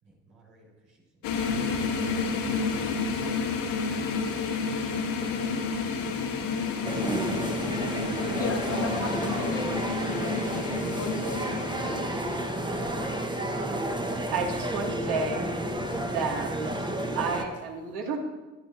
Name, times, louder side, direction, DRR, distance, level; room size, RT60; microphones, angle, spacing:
voice 1, 0.0-1.9 3.8-4.0 5.1-7.6, right 2 dB, 85° right, -5 dB, 3.6 m, -55 dB
sound 1, 1.2-12.5, left 4 dB, 75° left, 1.6 m, -30 dB
sound 2, 6.8-17.4, right 1 dB, 10° right, 1.1 m, -31 dB
voice 2, 8.4-9.7 10.2-11.4 11.7-12.5, left 5 dB, 35° left, 6 dB, 1.0 m, -35 dB
voice 3, 14.3-15.5 16.0-16.5 17.1-18.2, right 4 dB, 65° right, 0 dB, 2.2 m, -31 dB
12.0 x 10.5 x 2.7 m, 1.2 s
hypercardioid pair, 55°, 43 cm